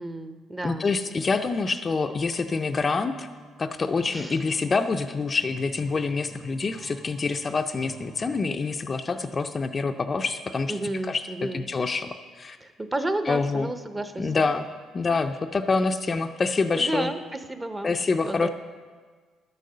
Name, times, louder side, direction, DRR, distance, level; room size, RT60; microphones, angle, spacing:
voice 1, 0.0-0.9 4.1-4.4 10.7-11.6 12.6-14.3 16.8-17.9 18.2-18.5, right 1 dB, 15° right, 9 dB, 0.6 m, -32 dB
voice 2, 0.6-3.3 3.6-10.8 11.1-12.1 12.3-12.6 13.3-13.7 14.2-14.6 14.9-17.1 17.8-18.5, left 4 dB, 30° left, 7 dB, 0.4 m, -26 dB
sound 1, 2.4-8.5, right 3 dB, 35° right, 1.3 m, -49 dB
11.5 x 6.5 x 6.6 m, 1.5 s
cardioid pair, 125°, 0 cm